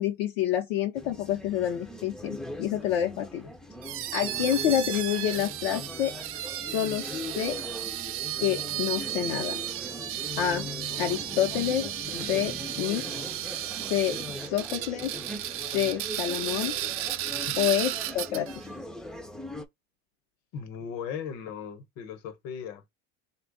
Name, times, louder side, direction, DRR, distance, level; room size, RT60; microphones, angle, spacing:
voice 1, 0.0-3.4 4.1-6.1 6.7-7.6 8.4-9.6 10.4-10.7 11.0-13.3 13.9-14.2 14.4-15.1 15.7-16.8 17.6-18.5, left 11 dB, 85° left, 0.7 m, -28 dB
sound 1, 0.9-19.7, left 1 dB, ahead, 0.4 m, -41 dB
sound 2, 3.8-18.6, right 13 dB, 50° right, 0.5 m, -34 dB
voice 2, 20.5-22.8, left 7 dB, 65° left, 1.0 m, -37 dB
3.4 x 2.3 x 3.7 m
supercardioid pair, 120°, 29 cm